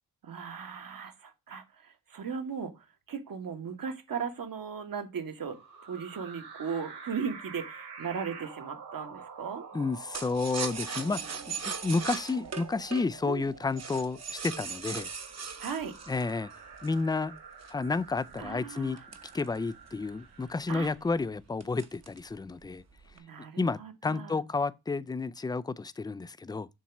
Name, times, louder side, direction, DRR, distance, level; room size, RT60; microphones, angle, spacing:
voice 1, 0.2-9.6 13.2-13.5 15.6-16.0 18.4-19.0 20.7-20.9 23.1-24.4, right 6 dB, 55° right, 1.5 m, -37 dB
sound 1, 5.4-21.1, right 5 dB, 75° right, 3.2 m, -48 dB
voice 2, 9.7-15.1 16.1-16.5 16.8-17.3 17.7-19.0 19.3-22.8 23.6-26.7, left 3 dB, 10° left, 0.3 m, -31 dB
sound 2, 10.1-17.1 17.6-20.0 20.4-20.5 20.8-21.2 21.6-22.3 22.6-23.2, right 5 dB, 40° right, 1.1 m, -39 dB
7.1 x 3.0 x 5.8 m
cardioid pair, 75°, 39 cm